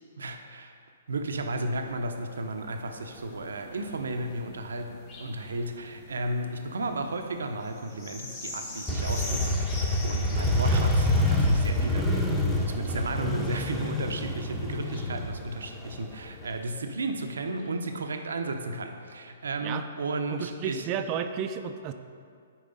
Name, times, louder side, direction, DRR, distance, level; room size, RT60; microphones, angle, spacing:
voice 1, 0.2-0.7 1.1-12.3 12.7-20.8, right 2 dB, 80° right, 5 dB, 0.7 m, -34 dB
sound 1, 1.1-16.9 17.6-17.7, left 2 dB, 40° left, 2.0 m, -45 dB
Motorcycle, 8.9-16.5, left 1 dB, 5° left, 1.0 m, -26 dB
voice 2, 20.3-21.9, right 8 dB, 35° right, 8 dB, 0.5 m, -33 dB
10.0 x 4.8 x 4.0 m, 2.3 s
hypercardioid pair, 130°, 0 cm